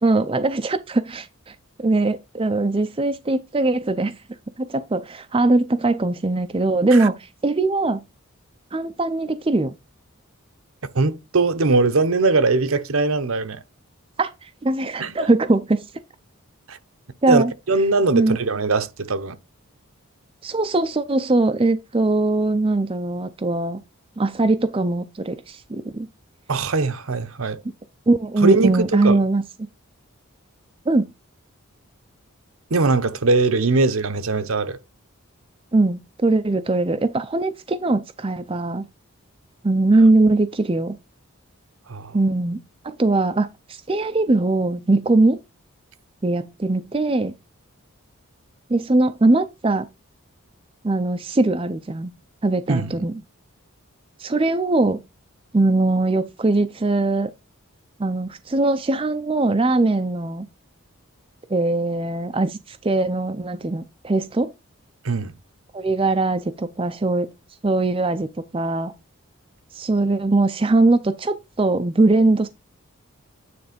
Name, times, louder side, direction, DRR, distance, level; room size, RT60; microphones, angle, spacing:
voice 1, 0.0-4.2 4.6-8.0 8.7-9.7 14.2-15.8 17.2-17.5 18.1-18.4 20.4-23.8 24.2-26.1 28.1-29.4 30.9-31.1 35.7-38.9 39.6-40.9 42.1-42.6 42.8-45.4 46.2-47.3 48.7-49.8 50.8-52.1 52.4-53.2 54.2-55.0 55.5-57.3 58.0-60.5 61.5-64.5 65.7-67.3 67.6-68.9 69.7-72.5, right 2 dB, 25° right, 0.4 m, -21 dB
voice 2, 10.9-13.6 15.0-15.3 16.7-16.8 17.3-19.4 26.5-27.6 28.4-29.2 32.7-34.8 41.9-42.2 52.7-53.0 65.0-65.3, right 3 dB, 70° right, 0.8 m, -21 dB
9.4 x 3.3 x 5.1 m
head